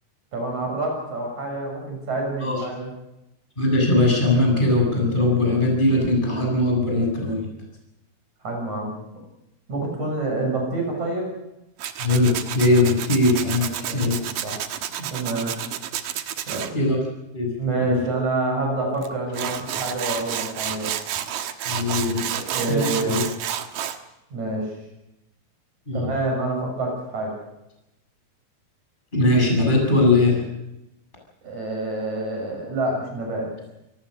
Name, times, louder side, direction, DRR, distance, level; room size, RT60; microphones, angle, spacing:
voice 1, 0.3-2.9 8.4-8.9 9.7-11.3 13.7-14.6 15.0-15.6 16.4-16.7 17.6-20.9 22.3-23.2 24.3-24.7 25.9-27.3 31.4-33.5, right 2 dB, 45° right, 1 dB, 7.9 m, -27 dB
voice 2, 3.6-7.5 12.0-14.2 16.7-17.0 17.3-17.5 17.8-18.0 21.7-22.2 22.7-23.2 25.9-26.1 29.1-30.4, left 2 dB, 10° left, 0 dB, 7.5 m, -20 dB
Tools, 11.8-16.7 19.0-19.1 19.3-24.0, right 10 dB, 65° right, 2.7 m, -30 dB
28.5 x 19.0 x 6.6 m, 0.91 s
omnidirectional pair, 4.9 m